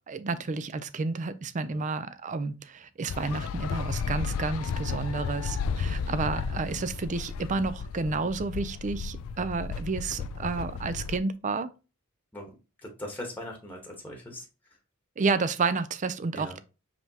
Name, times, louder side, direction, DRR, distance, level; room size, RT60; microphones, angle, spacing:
voice 1, 0.0-11.7 15.2-16.6, right 4 dB, 35° right, 0.4 m, -31 dB
sound 1, 3.1-11.2, left 5 dB, 90° left, 0.3 m, -33 dB
voice 2, 12.8-14.5 16.3-16.6, left 1 dB, 10° left, 1.1 m, -40 dB
5.0 x 3.4 x 2.8 m
head